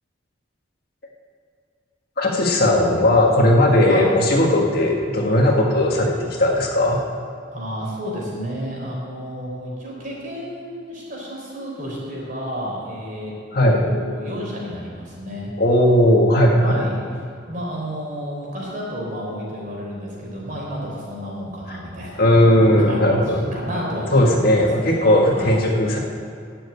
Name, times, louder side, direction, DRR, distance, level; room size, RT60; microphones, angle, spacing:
voice 1, 2.2-7.0 13.5-13.9 15.6-16.9 21.7-21.8 22.2-23.5 24.1-26.0, left 1 dB, 55° left, 0 dB, 1.7 m, -17 dB
voice 2, 7.5-13.3 13.6-15.5 16.6-16.9 17.5-22.2 22.6-25.6, equal, 45° right, -3 dB, 4.0 m, -31 dB
11.0 x 7.8 x 8.6 m, 2.3 s
head